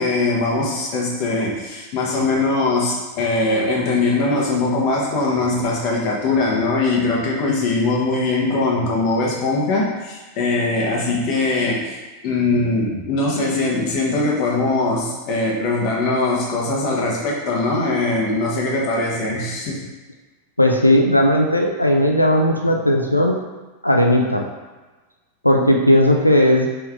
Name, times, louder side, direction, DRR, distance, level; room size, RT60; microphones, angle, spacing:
voice 1, 0.0-12.0 12.2-19.8, left 2 dB, 40° left, -2 dB, 1.1 m, -21 dB
voice 2, 20.6-23.4 23.8-24.5 25.4-26.7, left 1 dB, 85° left, 1 dB, 0.4 m, -16 dB
4.6 x 3.2 x 3.4 m, 1.2 s
figure-of-eight pair, 90°, 0 cm